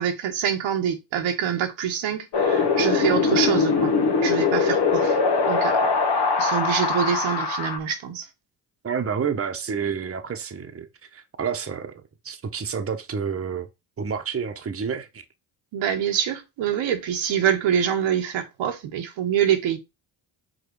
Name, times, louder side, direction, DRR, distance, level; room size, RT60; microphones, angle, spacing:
voice 1, 0.0-3.9 4.2-5.2 5.4-5.8 6.4-8.3 15.7-19.8, right 9 dB, 70° right, 1.3 m, -25 dB
Wind, 2.3-7.8, left 4 dB, 55° left, 1.3 m, -22 dB
voice 2, 8.8-13.7 14.0-15.2, right 6 dB, 30° right, 1.1 m, -29 dB
5.4 x 3.9 x 4.7 m
supercardioid pair, 60°, 49 cm